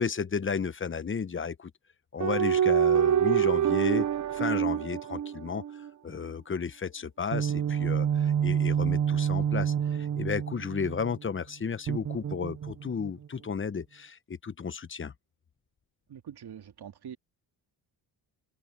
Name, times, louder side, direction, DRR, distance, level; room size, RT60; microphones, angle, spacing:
voice 1, 0.0-1.7 2.1-15.1, left 6 dB, 30° left, 0.9 m, -33 dB
sound 1, 2.2-5.9 7.3-11.1 11.9-13.1, right 9 dB, 40° right, 0.8 m, -26 dB
voice 2, 16.1-17.2, right 9 dB, 60° right, 2.4 m, -44 dB
open air
cardioid pair, 85°, 43 cm